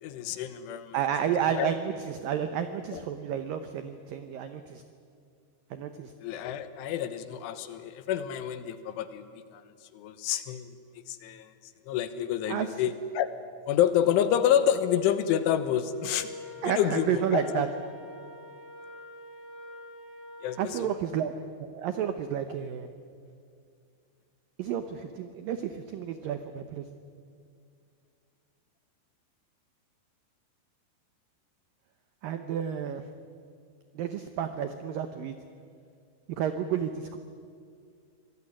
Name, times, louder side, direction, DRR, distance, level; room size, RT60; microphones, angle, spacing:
voice 1, 0.0-1.0 1.5-1.7 2.9-3.0 6.2-9.6 9.9-10.7 11.1-11.5 11.9-13.3 13.7-16.3 16.6-17.6 20.4-20.9, left 10 dB, 90° left, 11 dB, 3.7 m, -28 dB
voice 2, 0.9-4.8 5.7-6.1 12.5-12.7 16.6-17.7 20.6-21.3 21.6-22.9 24.6-26.9 32.2-33.0 33.9-35.3 36.4-37.2, right 9 dB, 90° right, 9 dB, 1.9 m, -31 dB
Wind instrument woodwind instrument, 15.9-20.8, left 1 dB, 40° left, 6.5 m, -45 dB
25.5 x 19.5 x 10.0 m, 2.3 s
omnidirectional pair, 5.4 m